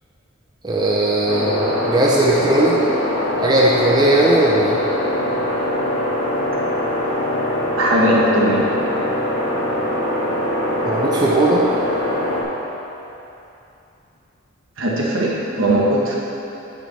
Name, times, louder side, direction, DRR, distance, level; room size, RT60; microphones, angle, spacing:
voice 1, 0.6-2.8 3.4-4.8 10.8-11.7, right 1 dB, 20° right, -4 dB, 0.6 m, -17 dB
sound 1, 1.3-12.4, left 1 dB, 80° left, 1.7 m, -22 dB
voice 2, 7.8-8.7 14.8-16.2, right 1 dB, 65° right, -4 dB, 1.3 m, -18 dB
9.2 x 5.2 x 4.2 m, 2.9 s
head